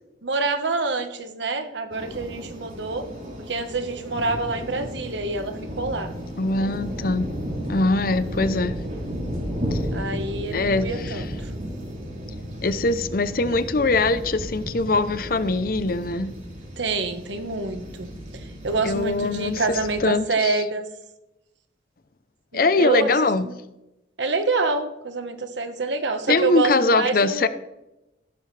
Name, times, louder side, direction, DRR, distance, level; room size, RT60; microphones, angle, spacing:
voice 1, 0.2-3.1 3.5-6.1 8.3-8.7 9.9-11.5 16.8-20.9 22.5-23.1 23.4-23.5 24.2-27.5, right 3 dB, 85° right, 8 dB, 1.3 m, -27 dB
sound 1, 1.9-20.1, equal, 50° right, 3.9 m, -34 dB
voice 2, 6.4-7.3 7.7-8.8 9.7-9.8 10.5-11.1 12.6-16.3 18.8-20.6 22.5-23.5 26.3-27.5, left 3 dB, 50° left, 13 dB, 0.6 m, -22 dB
15.0 x 13.5 x 3.3 m, 0.96 s
head